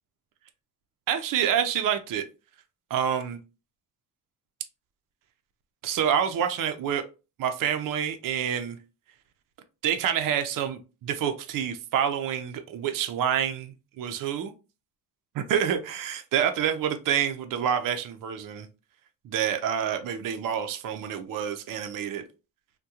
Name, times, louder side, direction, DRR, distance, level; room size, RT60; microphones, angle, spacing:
voice 1, 1.1-2.2 2.9-3.4 5.8-7.0 7.4-8.8 9.8-14.5 15.5-18.7 19.2-22.2, right 9 dB, 60° right, 0.5 m, -27 dB
3.5 x 2.2 x 2.8 m
cardioid pair, 135°, 37 cm